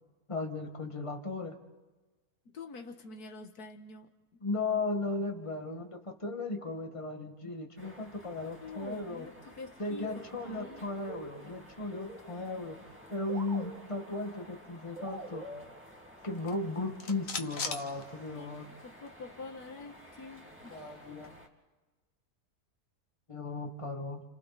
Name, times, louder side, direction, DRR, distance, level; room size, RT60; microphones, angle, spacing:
voice 1, 0.3-1.6 4.4-9.3 9.8-15.5 16.2-18.7 20.7-21.3 23.3-24.2, left 3 dB, 20° left, 3 dB, 1.9 m, -36 dB
voice 2, 2.5-4.1 8.6-10.9 18.3-18.5 18.8-21.0, left 3 dB, 90° left, 6 dB, 2.0 m, -47 dB
sound 1, 7.8-21.5, equal, 10° right, 2.4 m, -54 dB
sound 2, 9.9-10.6 10.9-12.7 12.9-13.0 13.3-14.4 15.0-16.4, right 1 dB, 30° right, 1.9 m, -46 dB
sound 3, 16.3-18.8 19.1-19.2 19.5-21.4, left 5 dB, 60° left, 1.7 m, -42 dB
30.0 x 29.5 x 4.3 m, 1.2 s
omnidirectional pair, 1.6 m